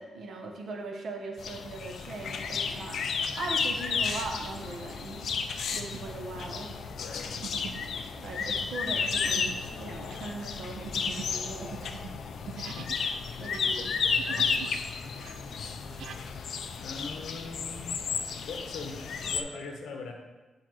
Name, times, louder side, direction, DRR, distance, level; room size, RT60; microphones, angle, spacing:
voice 1, 0.0-5.2 5.7-6.7 8.2-11.8 13.4-13.9 14.3-14.5, right 3 dB, 50° right, 2 dB, 0.8 m, -40 dB
sound 1, 1.4-19.4, left 5 dB, 55° left, 0.4 m, -33 dB
sound 2, 4.2-4.4 4.9-5.1 5.7-6.2 6.5-13.0 13.3-14.8 15.0-16.2, right 8 dB, 80° right, 0.3 m, -45 dB
voice 2, 6.9-7.4 12.7-12.9 13.8-14.7 16.8-18.0 18.5-20.1, left 4 dB, 80° left, 3 dB, 0.9 m, -41 dB
8.3 x 4.7 x 3.0 m, 1.2 s
wide cardioid pair, 180°, 0 cm